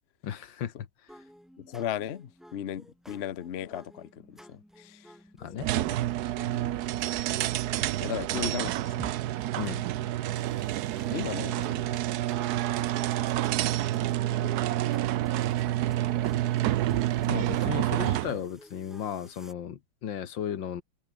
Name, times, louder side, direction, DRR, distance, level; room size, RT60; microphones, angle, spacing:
voice 1, 0.2-0.7 5.4-5.7 9.6-9.8 17.3-20.8, left 9 dB, 80° left, 2.1 m, -35 dB
sound 1, 1.1-19.5, equal, ahead, 5.5 m, -51 dB
voice 2, 1.6-5.1 5.6-5.9 6.5-6.8 8.0-8.9 11.1-12.0 14.4-14.7, left 10 dB, 50° left, 0.7 m, -36 dB
sound 2, 5.6-18.4, right 14 dB, 65° right, 1.0 m, -28 dB
omnidirectional pair, 2.0 m